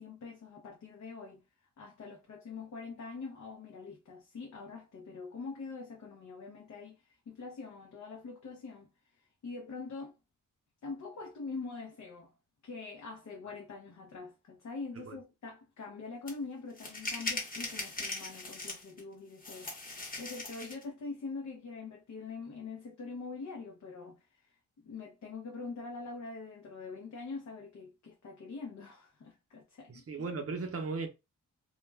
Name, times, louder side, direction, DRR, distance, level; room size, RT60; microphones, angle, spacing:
voice 1, 0.0-1.4 1.8-8.9 9.4-10.2 10.8-12.3 12.6-19.7 20.2-24.6 24.8-30.0, left 4 dB, 55° left, 0.6 m, -44 dB
sound 1, 16.3-16.4 16.8-19.0 19.4-20.8, left 2 dB, 25° left, 0.9 m, -39 dB
voice 2, 29.9-31.1, right 4 dB, 45° right, 0.6 m, -36 dB
2.2 x 2.1 x 3.2 m
wide cardioid pair, 105°, 33 cm